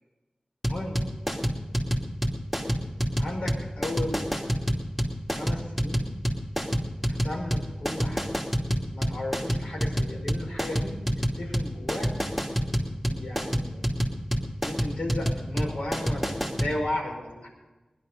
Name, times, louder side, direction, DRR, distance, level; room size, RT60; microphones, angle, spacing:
sound 1, 0.6-16.7, equal, 5° left, 2.6 m, -27 dB
voice 1, 3.2-4.6 5.3-6.0 7.0-8.3 8.9-12.1 12.9-13.9 14.6-17.5, left 1 dB, 80° left, -1 dB, 5.1 m, -35 dB
20.0 x 11.0 x 5.4 m, 1.1 s
wide cardioid pair, 75°, 2 cm